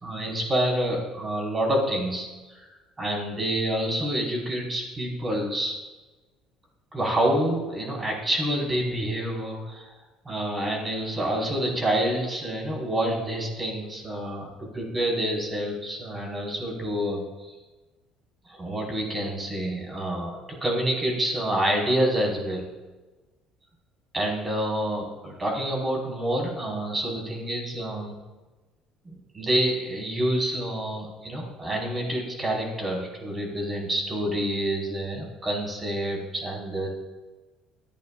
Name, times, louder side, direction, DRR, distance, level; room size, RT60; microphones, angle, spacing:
voice 1, 0.0-5.8 6.9-9.9 10.3-17.6 18.5-20.3 20.6-22.7 24.1-28.2 29.1-36.9, right 1 dB, 20° right, -1 dB, 5.2 m, -28 dB
25.0 x 11.5 x 2.6 m, 1.2 s
cardioid pair, 100°, 0 cm